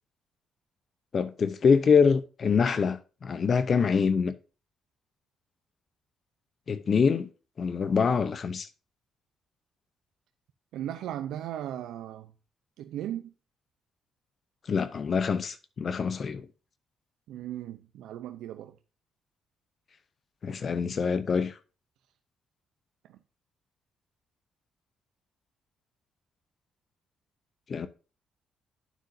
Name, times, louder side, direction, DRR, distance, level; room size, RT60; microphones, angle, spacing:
voice 1, 1.1-4.3 6.7-7.3 7.6-8.7 14.6-16.5 20.4-21.6 27.7-27.9, left 6 dB, 45° left, 0.6 m, -25 dB
voice 2, 10.7-12.3 12.8-13.3 17.3-18.8 23.1-23.2, right 11 dB, 85° right, 0.6 m, -37 dB
9.3 x 7.6 x 2.6 m
cardioid pair, 90°, 0 cm